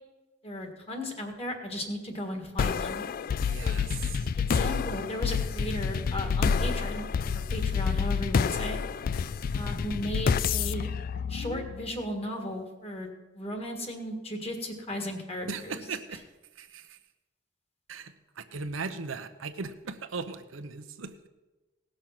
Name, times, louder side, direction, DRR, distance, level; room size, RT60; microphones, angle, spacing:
voice 1, 0.4-3.0 3.6-3.8 4.4-7.0 7.3-8.8 9.5-10.9 11.3-15.9, left 1 dB, 30° left, 4 dB, 1.7 m, -36 dB
sound 1, 2.6-12.0, left 6 dB, 45° left, 0.3 m, -29 dB
voice 2, 3.4-4.3 15.5-16.2 16.6-17.0 17.9-21.1, right 4 dB, 90° right, 9 dB, 0.8 m, -38 dB
17.5 x 6.5 x 5.9 m, 1.1 s
head